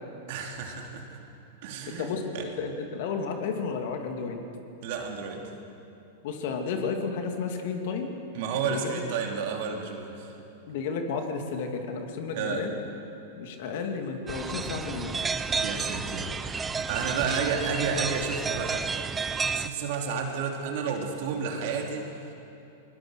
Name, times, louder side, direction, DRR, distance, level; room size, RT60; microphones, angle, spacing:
voice 1, 0.3-1.2 1.6-2.1 2.3-2.5 4.8-5.5 8.3-10.4 12.3-12.7 15.5-18.9 19.5-22.3, right 5 dB, 60° right, 2 dB, 3.3 m, -31 dB
voice 2, 2.0-4.4 6.2-8.1 8.7-9.0 10.7-12.7 13.3-15.2, left 5 dB, 60° left, 4 dB, 2.7 m, -32 dB
sound 1, 14.3-19.7, right 5 dB, 15° right, 0.8 m, -31 dB
20.5 x 20.5 x 6.6 m, 2.9 s
hypercardioid pair, 110°, 0 cm